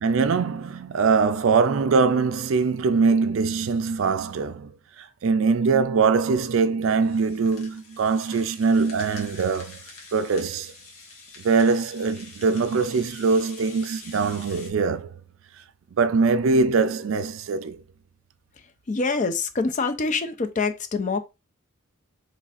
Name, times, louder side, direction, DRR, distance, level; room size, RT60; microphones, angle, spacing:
voice 1, 0.0-4.7 5.0-9.8 10.1-10.7 11.4-15.2 15.9-17.8, right 4 dB, 65° right, 0.4 m, -22 dB
Rattle (instrument), 7.0-14.7, left 3 dB, 85° left, 1.2 m, -46 dB
voice 2, 18.6-21.2, left 4 dB, 35° left, 0.4 m, -26 dB
3.9 x 3.2 x 2.5 m
head